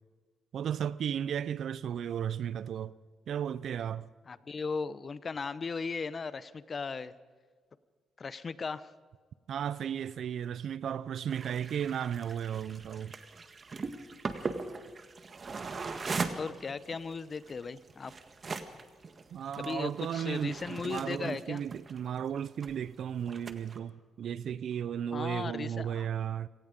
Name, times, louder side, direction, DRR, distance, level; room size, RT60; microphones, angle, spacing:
voice 1, 0.5-2.9 3.3-4.0 9.5-13.1 19.3-26.5, right 9 dB, 65° right, 0.6 m, -34 dB
voice 2, 4.3-7.2 8.2-8.9 16.3-18.1 19.5-21.6 25.1-26.1, left 4 dB, 40° left, 0.9 m, -37 dB
sound 1, 11.3-22.9 23.2-23.8, right 4 dB, 35° right, 1.7 m, -40 dB
27.5 x 18.0 x 5.2 m
cardioid pair, 90°, 0 cm